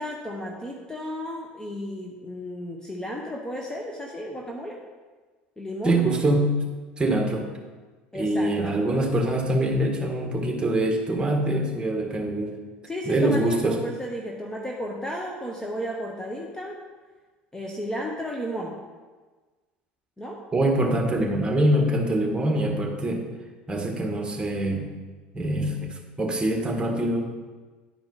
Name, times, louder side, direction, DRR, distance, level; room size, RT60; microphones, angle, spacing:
voice 1, 0.0-4.8 5.6-6.0 8.1-8.8 12.9-16.8 17.5-18.8 20.2-20.4, equal, 10° left, 0 dB, 1.0 m, -33 dB
voice 2, 5.8-6.6 7.0-7.5 8.1-12.5 13.0-13.8 20.5-23.2 23.7-24.9 25.3-27.2, right 1 dB, 15° right, 1 dB, 1.6 m, -24 dB
10.5 x 4.8 x 4.0 m, 1.4 s
hypercardioid pair, 75°, 6 cm